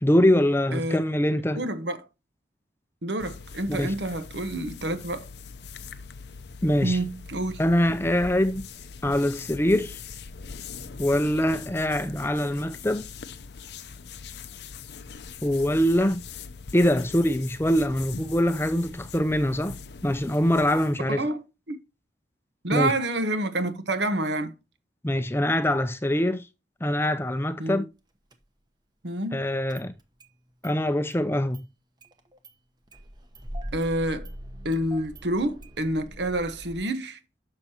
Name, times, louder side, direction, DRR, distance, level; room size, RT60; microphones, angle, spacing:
voice 1, 0.0-1.6 3.7-3.9 6.6-7.0 7.6-8.6 9.0-10.0 11.0-13.1 15.4-16.2 16.7-19.8 20.0-21.2 22.7-22.9 25.0-26.4 26.8-27.9 29.3-29.9 30.6-31.6, left 1 dB, 15° left, 0.5 m, -23 dB
voice 2, 0.7-1.0 1.5-2.1 3.0-5.3 6.8-7.6 21.1-21.8 22.6-24.5 27.6-27.9 29.0-29.4 33.7-34.3 34.6-37.2, right 1 dB, 75° right, 1.2 m, -28 dB
sound 1, 3.2-21.0, left 5 dB, 70° left, 0.7 m, -42 dB
Engine starting, 28.3-28.4 29.7-30.3 30.6-30.7 31.1-31.2 31.5-31.6 32.0-32.5 32.9-36.8, equal, 25° right, 0.9 m, -41 dB
10.5 x 6.8 x 2.9 m
head